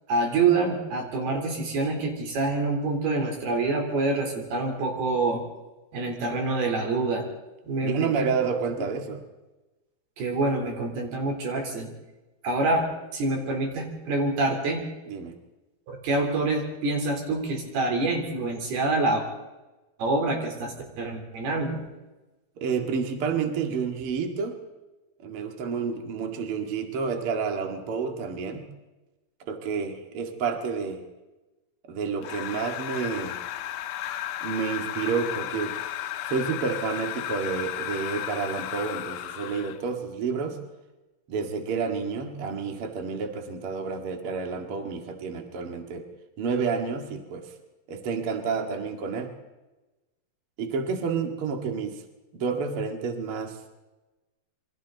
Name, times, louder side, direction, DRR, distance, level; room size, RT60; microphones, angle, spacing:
voice 1, 0.1-5.4 5.9-7.3 7.6-8.3 10.2-11.9 12.4-14.8 15.9-19.2 20.0-21.8, right 3 dB, 75° right, 2 dB, 5.7 m, -26 dB
voice 2, 7.8-9.2 15.1-15.3 22.6-24.6 25.2-28.6 29.5-31.0 31.9-33.4 34.4-35.8 36.3-40.6 41.3-46.0 46.4-47.5 47.9-49.3 50.6-52.0 52.3-53.6, right 5 dB, 45° right, 4 dB, 2.3 m, -29 dB
sound 1, 32.2-39.9, left 12 dB, 75° left, 2.0 m, -34 dB
27.5 x 23.5 x 4.1 m, 1.1 s
omnidirectional pair, 4.6 m